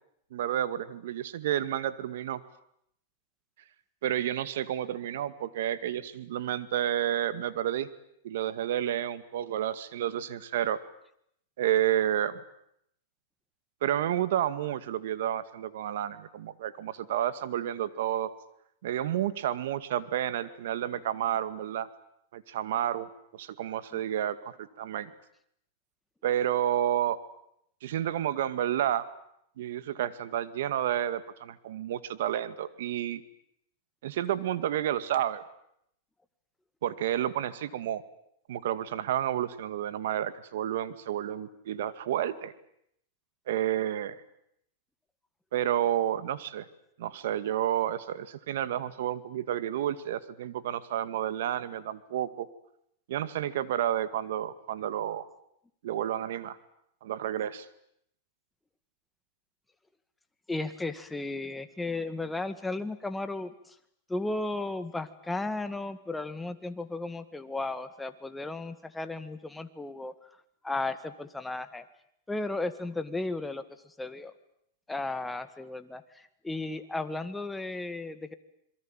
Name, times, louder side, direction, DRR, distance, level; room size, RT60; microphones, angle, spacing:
voice 1, 0.3-2.4 4.0-7.9 8.2-10.8 11.6-12.4 13.8-18.3 18.8-21.9 22.3-23.1 23.4-25.1 26.2-27.2 27.8-29.0 29.6-33.2 34.0-35.4 36.8-38.0 38.5-42.5 43.5-44.2 45.5-46.6 47.0-52.5 53.1-55.3 55.8-56.6 57.0-57.7, right 11 dB, 70° right, 14 dB, 2.2 m, -30 dB
voice 2, 60.5-63.8 64.1-70.3 70.6-71.8 72.3-74.3 74.9-78.3, left 2 dB, 5° left, 10 dB, 2.0 m, -35 dB
27.5 x 22.5 x 9.1 m, 0.73 s
supercardioid pair, 135°, 0 cm